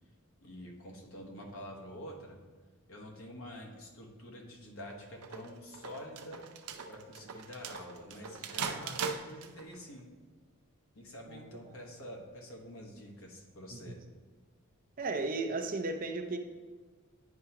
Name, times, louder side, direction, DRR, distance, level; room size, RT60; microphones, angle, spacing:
voice 1, 0.4-2.4 2.9-6.4 6.9-10.1 10.9-14.0, equal, 65° left, 0 dB, 1.2 m, -47 dB
sound 1, 4.9-9.8, right 6 dB, 85° right, 0.5 m, -40 dB
voice 2, 15.0-16.4, right 3 dB, 40° right, 5 dB, 0.5 m, -35 dB
9.5 x 4.6 x 2.9 m, 1.4 s
head